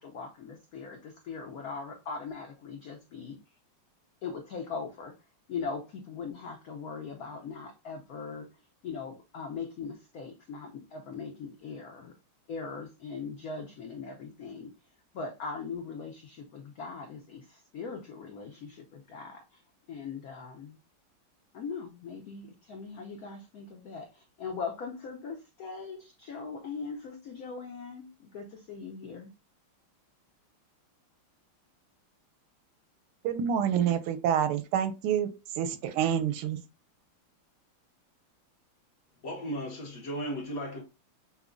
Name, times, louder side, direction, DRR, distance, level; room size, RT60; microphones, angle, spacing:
voice 1, 0.0-3.4 4.2-5.1 5.5-8.5 8.8-12.1 12.5-14.7 15.1-19.6 19.9-20.8 21.5-29.3, left 5 dB, 80° left, 0.8 m, -40 dB
voice 2, 33.2-36.6, right 9 dB, 85° right, 1.5 m, -28 dB
voice 3, 39.2-40.8, equal, 50° left, 1.2 m, -35 dB
5.7 x 2.2 x 2.5 m
omnidirectional pair, 2.3 m